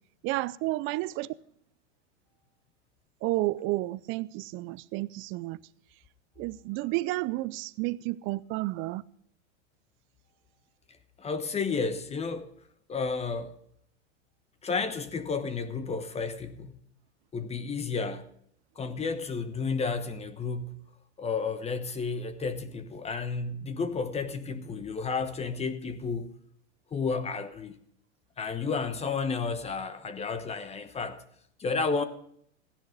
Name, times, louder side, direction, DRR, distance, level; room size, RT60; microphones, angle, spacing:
voice 1, 0.2-1.3 3.2-5.6 6.4-9.0, right 19 dB, 35° right, 0.5 m, -31 dB
voice 2, 11.2-12.5 12.9-13.6 14.6-16.8 17.3-18.3 18.8-20.8 21.2-26.3 26.9-27.8 28.4-31.2 31.6-32.0, left 4 dB, 15° left, 1.1 m, -32 dB
15.5 x 10.5 x 5.2 m
hypercardioid pair, 115°, 36 cm